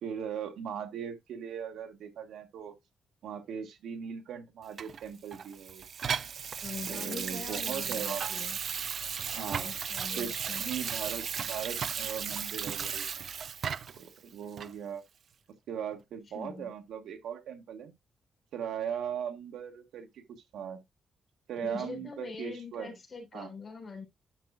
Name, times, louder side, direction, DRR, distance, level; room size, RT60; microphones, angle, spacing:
voice 1, 0.0-2.8 3.2-5.8 6.9-8.4 9.3-9.7 10.1-13.0 14.0-15.0 15.7-17.9 18.5-20.2 20.5-20.8 21.5-22.9 23.3-23.5, right 8 dB, 85° right, 1.5 m, -39 dB
Water tap faucet / Sink (filling or washing), 4.8-14.1 14.6-14.7, right 7 dB, 45° right, 0.4 m, -35 dB
voice 2, 6.6-8.6 9.5-10.7 16.3-16.7 21.6-24.0, left 4 dB, 30° left, 4.1 m, -43 dB
11.0 x 6.0 x 2.3 m
wide cardioid pair, 170°, 0 cm